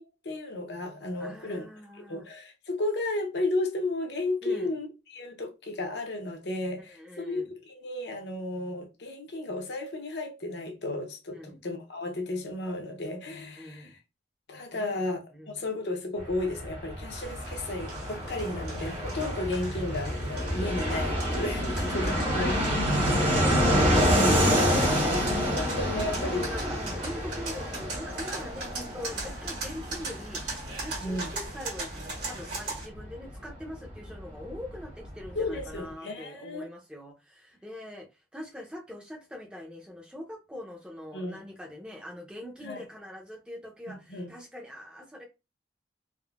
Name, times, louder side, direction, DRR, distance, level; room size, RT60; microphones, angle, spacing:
voice 1, 0.0-1.7 2.1-14.0 14.5-22.5 25.3-26.5 31.0-31.3 35.3-36.7 41.1-41.4 42.6-42.8 43.9-44.3, left 2 dB, 65° left, 0.6 m, -33 dB
voice 2, 1.2-2.2 4.4-4.7 6.9-7.5 11.3-11.6 13.6-13.9 14.7-15.0 15.3-15.7 21.9-22.4 26.2-31.9 32.2-45.2, left 1 dB, 5° right, 0.5 m, -43 dB
Fixed-wing aircraft airplane, 16.2-34.6 34.8-34.9 35.1-35.8, equal, 35° right, 0.9 m, -28 dB
sound 1, 17.1-32.9, right 3 dB, 65° right, 1.6 m, -40 dB
3.6 x 2.0 x 2.3 m
head